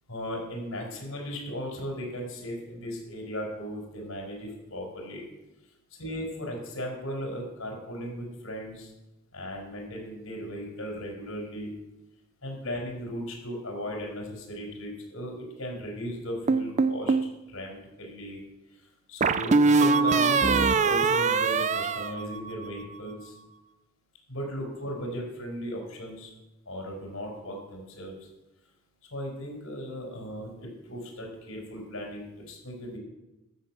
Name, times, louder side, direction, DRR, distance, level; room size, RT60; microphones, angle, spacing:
voice 1, 0.1-5.3 6.0-8.9 9.3-11.7 12.4-18.4 19.1-23.3 24.3-26.3 26.6-28.3 29.1-33.0, equal, 80° left, 0 dB, 4.9 m, -37 dB
sound 1, 16.5-17.3 19.2-22.8, right 4 dB, 35° right, 0.5 m, -23 dB
13.0 x 7.2 x 7.6 m, 0.98 s
head